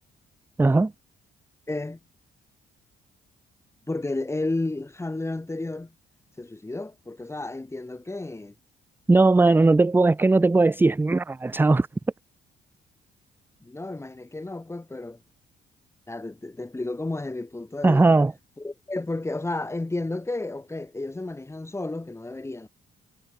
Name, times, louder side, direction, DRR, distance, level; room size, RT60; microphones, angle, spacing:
voice 1, 0.6-0.9 9.1-11.9 17.8-18.3, right 3 dB, 10° right, 0.4 m, -18 dB
voice 2, 1.7-2.0 3.9-5.9 6.4-8.5 13.6-15.2 16.1-18.2 18.6-22.7, left 2 dB, 15° left, 1.6 m, -32 dB
cardioid pair, 90°, 20 cm